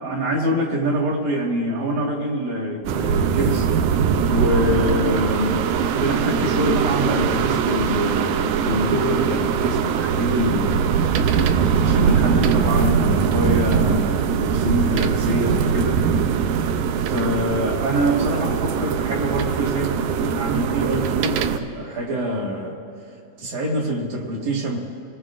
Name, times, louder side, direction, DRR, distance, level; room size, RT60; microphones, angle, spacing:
voice 1, 0.0-3.7 4.3-11.5 11.8-16.0 17.0-22.8 23.4-24.8, equal, 65° right, -2 dB, 3.2 m, -25 dB
sound 1, 2.9-21.6, right 7 dB, 80° right, 2.0 m, -21 dB
27.0 x 19.0 x 2.5 m, 2.5 s
omnidirectional pair, 3.8 m